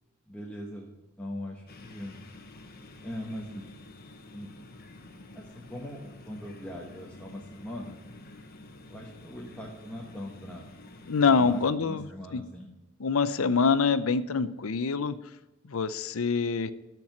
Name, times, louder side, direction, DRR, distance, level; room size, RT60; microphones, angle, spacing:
voice 1, 0.3-0.9 1.2-2.2 3.0-3.6 4.3-4.5 5.3-8.0 8.9-10.6 11.3-12.7, left 1 dB, 5° left, -2 dB, 1.1 m, -40 dB
sound 1, 1.7-11.7, left 2 dB, 45° left, 1.1 m, -49 dB
voice 2, 11.1-12.0 12.3-12.4 13.0-15.2 15.7-16.7, left 5 dB, 70° left, 14 dB, 0.6 m, -25 dB
13.0 x 4.6 x 7.9 m, 1.0 s
head